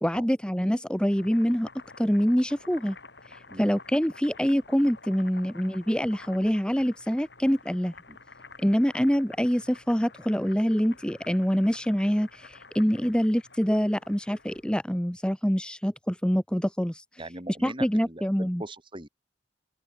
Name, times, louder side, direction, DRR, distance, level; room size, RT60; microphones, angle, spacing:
voice 1, 0.0-1.7 2.0-3.0 3.3-7.9 8.6-17.0 17.6-18.6, equal, 5° left, 1.5 m, -25 dB
Boiling, 0.9-14.7, left 4 dB, 65° left, 6.5 m, -50 dB
voice 2, 17.2-19.1, right 1 dB, 25° right, 7.0 m, -41 dB
open air
head